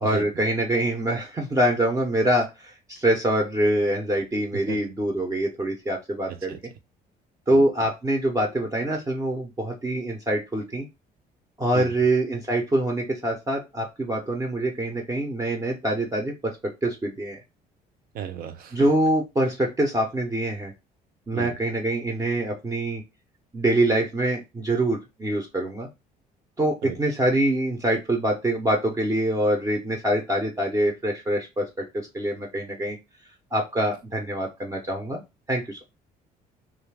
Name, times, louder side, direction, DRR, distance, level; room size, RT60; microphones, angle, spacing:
voice 1, 0.0-6.5 7.5-10.9 11.6-16.6 16.8-17.4 18.7-20.7 21.3-23.0 23.5-25.9 26.6-31.8 32.1-33.0 33.5-35.2 35.5-35.8, right 1 dB, 20° right, 0.6 m, -25 dB
voice 2, 18.1-18.8 21.3-21.5 26.8-27.0, right 9 dB, 60° right, 0.6 m, -34 dB
2.6 x 2.4 x 3.3 m
cardioid pair, 110°, 17 cm